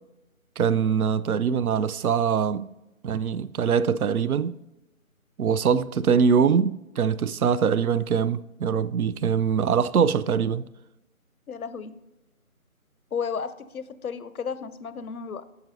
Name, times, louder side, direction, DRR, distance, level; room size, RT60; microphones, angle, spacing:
voice 1, 0.6-2.7 3.0-4.5 5.4-10.6, right 7 dB, 85° right, 0.5 m, -23 dB
voice 2, 11.5-11.9 13.1-15.4, left 6 dB, 85° left, 0.7 m, -33 dB
10.5 x 6.8 x 2.6 m
figure-of-eight pair, 170°, 42 cm